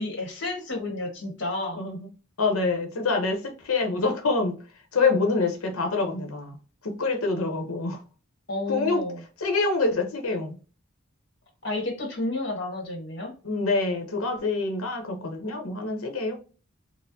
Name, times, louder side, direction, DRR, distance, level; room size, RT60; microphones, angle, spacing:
voice 1, 0.0-1.8 8.5-9.2 11.6-13.3, left 2 dB, 50° left, 1.2 m, -31 dB
voice 2, 1.8-2.1 2.4-4.5 4.9-6.6 6.8-8.0 8.7-9.0 9.4-10.6 13.4-16.3, left 3 dB, 90° left, 0.8 m, -26 dB
4.2 x 2.0 x 2.6 m
head